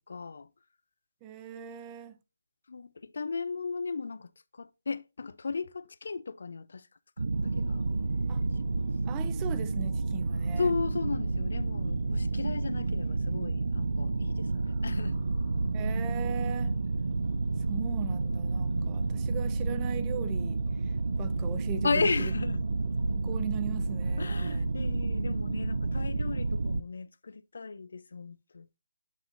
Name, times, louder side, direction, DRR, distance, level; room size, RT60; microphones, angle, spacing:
voice 1, 0.1-0.5 2.7-6.9 7.2-7.8 8.8-8.9 10.6-15.2 21.8-22.6 24.2-28.7, left 4 dB, 70° left, 0.3 m, -35 dB
voice 2, 1.2-2.2 8.3-8.4 9.1-10.7 15.7-16.7 17.7-20.6 21.2-22.3 22.7-24.7, right 9 dB, 20° right, 0.5 m, -40 dB
sound 1, 7.2-26.8, right 3 dB, 75° right, 0.4 m, -30 dB
sound 2, 7.3-26.8, right 1 dB, 55° right, 1.9 m, -47 dB
8.1 x 5.6 x 2.5 m
figure-of-eight pair, 150°, 0 cm